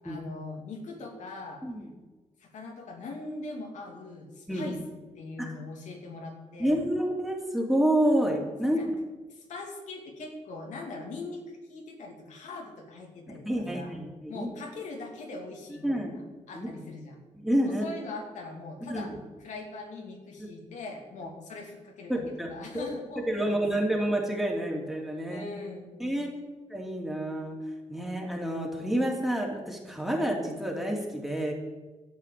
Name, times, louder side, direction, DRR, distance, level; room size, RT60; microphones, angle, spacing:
voice 1, 0.0-1.6 2.4-6.8 8.6-8.9 9.3-13.9 14.3-16.1 16.5-17.2 17.6-19.1 19.4-22.2 22.5-23.6 25.3-26.0, left 3 dB, 75° left, 1 dB, 2.8 m, -41 dB
voice 2, 6.6-8.8 13.4-14.5 15.7-16.1 16.5-16.7 17.4-17.8 18.8-19.1 20.4-20.5 22.1-22.9 23.3-25.4 26.0-27.6 27.9-31.5, right 1 dB, ahead, -1 dB, 2.8 m, -29 dB
12.5 x 8.1 x 8.2 m, 1.2 s
cardioid pair, 120°, 12 cm